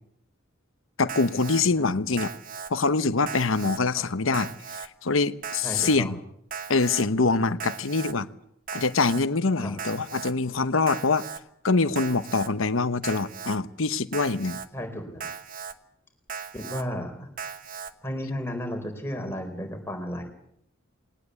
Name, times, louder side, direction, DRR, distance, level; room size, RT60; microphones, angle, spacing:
voice 1, 1.0-2.3 2.7-4.5 4.8-6.2 6.7-8.3 8.7-11.2 11.6-14.6, left 3 dB, 75° left, 13 dB, 1.0 m, -24 dB
Alarm, 1.1-1.6 2.2-2.7 3.3-3.8 4.3-4.9 5.4-6.0 6.5-7.0 7.6-8.1 8.7-9.2 9.8-10.3 10.9-11.4 12.0-12.5 13.0-13.6 14.1-14.7 15.2-15.7 16.3-16.8 17.4-17.9, right 6 dB, 45° right, 1.2 m, -37 dB
voice 2, 5.6-6.1 9.6-9.7 14.7-15.2 16.5-17.3 18.0-20.2, equal, 10° left, 3 dB, 4.3 m, -33 dB
21.0 x 19.0 x 8.3 m, 0.76 s
head